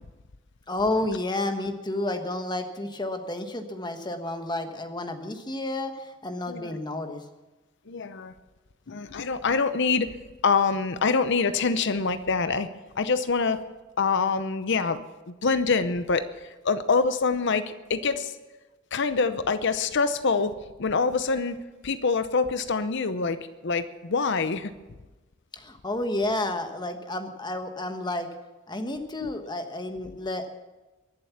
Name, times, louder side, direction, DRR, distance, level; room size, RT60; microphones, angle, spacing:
voice 1, 0.7-7.2 25.5-28.3 28.7-30.5, left 2 dB, 20° left, 6 dB, 1.3 m, -31 dB
voice 2, 7.9-8.3 8.9-10.1 10.4-12.7 13.0-13.6 14.0-15.0 15.4-18.3 18.9-23.4 23.6-24.7 29.2-29.3, left 4 dB, 60° left, 11 dB, 0.7 m, -25 dB
22.5 x 7.7 x 7.2 m, 1.1 s
head